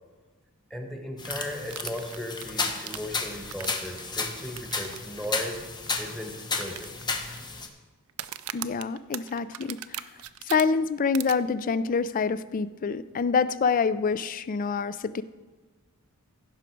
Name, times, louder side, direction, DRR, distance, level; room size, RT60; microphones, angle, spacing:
voice 1, 0.7-5.6 6.0-6.9, equal, ahead, 3 dB, 1.2 m, -37 dB
sound 1, 1.2-7.7, left 4 dB, 20° left, 0.8 m, -33 dB
sound 2, 1.7-4.0 4.6-5.0 5.2-5.3 5.9-6.0 6.6-7.4 8.1-10.6 11.1-11.3, right 13 dB, 70° right, 0.4 m, -38 dB
voice 2, 8.5-10.1 10.4-15.2, left 5 dB, 40° left, 16 dB, 0.3 m, -26 dB
15.5 x 6.1 x 4.6 m, 1.3 s
head